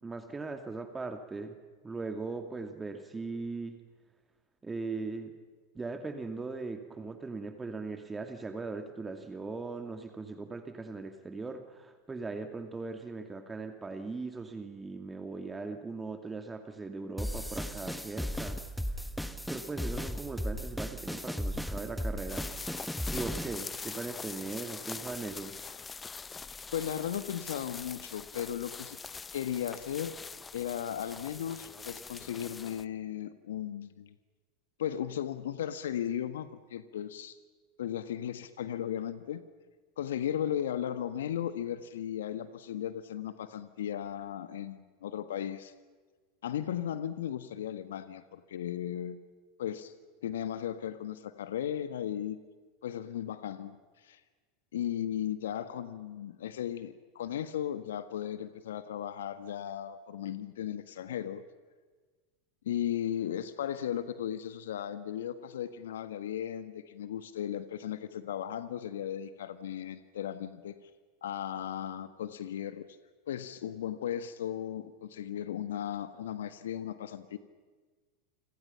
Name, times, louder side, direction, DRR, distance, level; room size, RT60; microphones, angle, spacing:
voice 1, 0.0-1.6 1.8-3.7 4.6-5.3 5.7-18.6 19.5-22.5 23.1-25.6, right 3 dB, 15° right, 6 dB, 2.6 m, -39 dB
sound 1, 17.2-23.6, equal, 5° left, 1.8 m, -36 dB
sound 2, 22.3-32.8, left 5 dB, 20° left, 0.8 m, -43 dB
voice 2, 26.7-29.0 29.3-30.1 30.5-34.1 34.8-37.3 37.8-39.4 40.0-45.7 46.4-49.2 49.6-49.9 50.2-52.4 52.8-53.7 54.0-54.2 54.7-61.4 62.6-70.7 71.2-72.9 73.3-77.4, left 10 dB, 75° left, 12 dB, 1.4 m, -36 dB
29.0 x 26.5 x 5.8 m, 1.4 s
hypercardioid pair, 85°, 0 cm